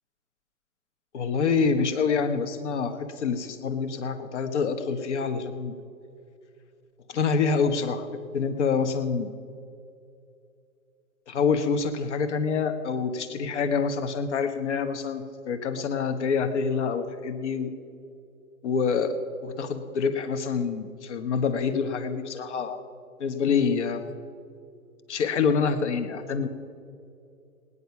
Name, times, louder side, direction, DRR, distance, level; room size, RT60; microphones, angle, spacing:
voice 1, 1.1-5.8 7.1-9.3 11.3-17.7 18.6-19.1 19.4-22.8 23.2-24.0 25.1-26.5, left 5 dB, 50° left, 9 dB, 1.3 m, -26 dB
19.0 x 9.8 x 5.8 m, 2.5 s
hypercardioid pair, 140°, 44 cm